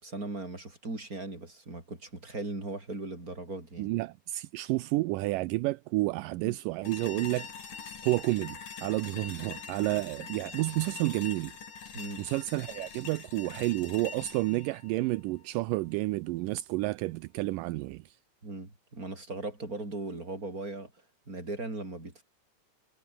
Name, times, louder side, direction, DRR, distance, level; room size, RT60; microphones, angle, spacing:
voice 1, 0.0-3.9 6.4-6.6 11.9-12.2 18.4-20.9 21.3-22.2, right 2 dB, 20° right, 6.5 m, -38 dB
voice 2, 3.8-11.5 12.2-18.2, right 20 dB, 80° right, 2.0 m, -30 dB
sound 1, 6.8-15.9, left 6 dB, 55° left, 5.1 m, -44 dB
omnidirectional pair, 4.3 m